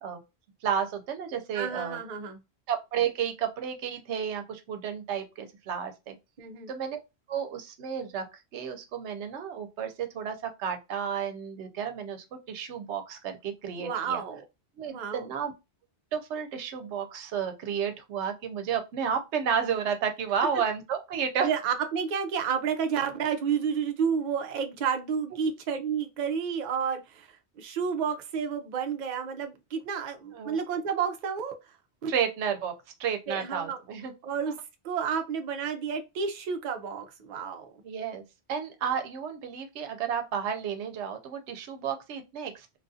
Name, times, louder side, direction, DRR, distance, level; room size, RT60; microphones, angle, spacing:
voice 1, 0.6-2.0 2.7-6.2 6.7-7.0 7.3-14.2 14.8-15.5 16.1-21.5 30.3-30.6 32.1-32.7 33.0-34.1 34.5-34.6 37.8-38.2 38.5-42.8, right 7 dB, 90° right, 0.9 m, -32 dB
voice 2, 1.5-2.4 6.4-6.7 13.8-14.4 14.9-15.2 21.4-27.3 27.6-31.6 32.0-32.1 33.3-33.8 34.2-34.5 34.8-37.7, right 7 dB, 55° right, 0.5 m, -30 dB
2.3 x 2.3 x 2.6 m
omnidirectional pair, 1.1 m